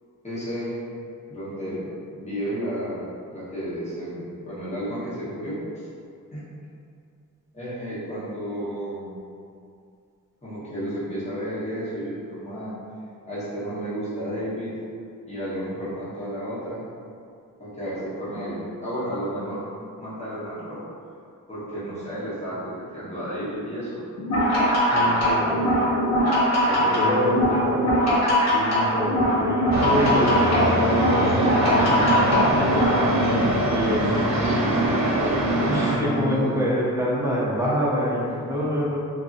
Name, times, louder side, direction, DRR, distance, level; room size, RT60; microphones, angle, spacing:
voice 1, 0.2-1.0 1.3-5.6 6.3-6.5 7.5-9.1 10.4-12.7 13.2-14.7 15.3-16.9 17.6-19.6 20.0-20.8 21.5-24.0 24.9-25.7 26.6-28.0 36.0-36.6, equal, 20° left, -11 dB, 1.1 m, -31 dB
sound 1, 24.2-33.1, equal, 50° left, 0.8 m, -21 dB
voice 2, 24.9-25.4 26.9-27.6 28.5-32.9 33.7-34.2 35.6-39.0, equal, 10° right, -7 dB, 0.8 m, -26 dB
sound 2, 29.7-36.0, right 1 dB, 55° right, 0.5 m, -23 dB
2.6 x 2.6 x 2.5 m, 2.3 s
cardioid pair, 80°, 34 cm